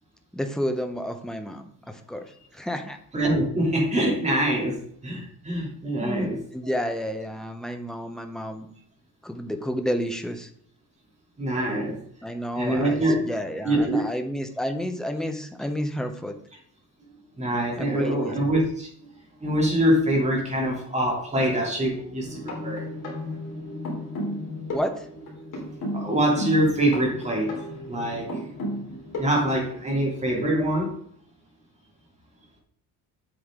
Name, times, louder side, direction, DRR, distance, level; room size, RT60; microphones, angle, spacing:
voice 1, 0.3-3.0 6.0-8.7 9.2-10.5 12.2-16.3 17.8-18.3 24.7-25.1, equal, ahead, 5 dB, 0.7 m, -30 dB
voice 2, 3.1-6.4 11.4-12.0 12.5-13.2 13.6-14.0 17.4-18.9 19.4-23.0 25.9-28.4 29.2-30.9, right 1 dB, 15° right, -3 dB, 2.8 m, -24 dB
sound 1, 22.2-29.5, left 1 dB, 50° left, 3.4 m, -34 dB
8.1 x 8.1 x 3.7 m, 0.64 s
cardioid pair, 170°, 40 cm